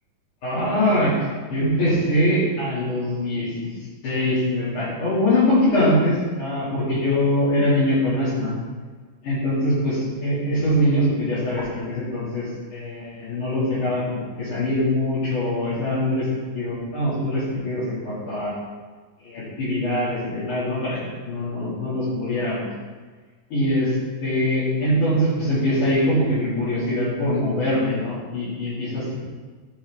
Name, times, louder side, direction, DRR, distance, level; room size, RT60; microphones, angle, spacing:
voice 1, 0.4-3.7 4.0-8.5 9.2-16.3 16.5-18.5 19.2-21.0 21.3-22.6 23.5-29.1, left 1 dB, 75° left, -11 dB, 4.2 m, -23 dB
11.5 x 6.2 x 3.7 m, 1.4 s
omnidirectional pair, 3.7 m